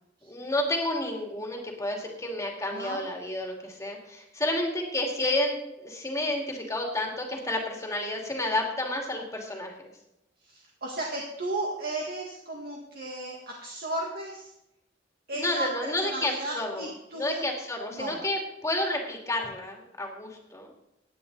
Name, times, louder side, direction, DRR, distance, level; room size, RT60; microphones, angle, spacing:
voice 1, 0.2-9.9 15.3-20.7, left 1 dB, 15° left, 1 dB, 2.4 m, -30 dB
voice 2, 2.7-3.0 10.4-14.5 15.3-17.4 17.9-18.2, right 2 dB, 55° right, -1 dB, 1.8 m, -34 dB
16.5 x 9.4 x 4.0 m, 0.85 s
head